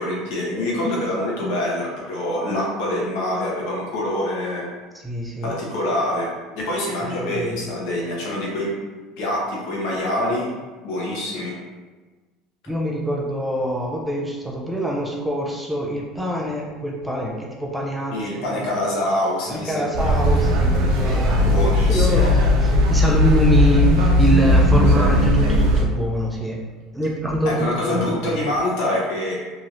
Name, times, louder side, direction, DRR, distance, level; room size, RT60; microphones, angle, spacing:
voice 1, 0.0-4.7 5.4-6.3 6.5-8.7 9.2-10.5 10.8-11.5 18.1-19.9 21.4-22.3 27.4-29.3, left 1 dB, 70° left, -4 dB, 1.0 m, -25 dB
voice 2, 5.0-5.6 7.0-7.7 12.7-18.7 19.5-21.6 21.9-26.6 26.9-28.5, equal, 5° right, -2 dB, 0.3 m, -25 dB
sound 1, 19.9-25.8, left 1 dB, 70° right, 0.5 m, -17 dB
3.0 x 2.7 x 2.5 m, 1.3 s
cardioid pair, 150°, 0 cm